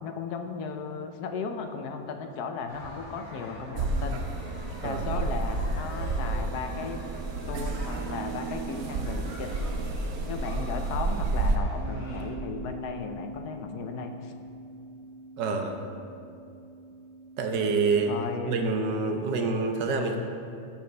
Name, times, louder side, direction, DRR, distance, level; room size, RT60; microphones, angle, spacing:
voice 1, 0.0-4.2 4.8-7.0 7.5-9.5 10.2-14.3 18.1-18.5, left 5 dB, 70° left, 6 dB, 1.2 m, -36 dB
sound 1, 2.7-12.3, left 1 dB, 90° left, 3.1 m, -46 dB
sound 2, 3.8-11.6, right 3 dB, 65° right, 1.2 m, -30 dB
Bass guitar, 11.8-18.0, right 1 dB, 50° right, 2.4 m, -43 dB
voice 2, 15.4-15.8 17.4-18.1 18.5-20.2, right 4 dB, 85° right, 4 dB, 1.5 m, -27 dB
15.5 x 6.8 x 3.3 m, 2.5 s
omnidirectional pair, 1.8 m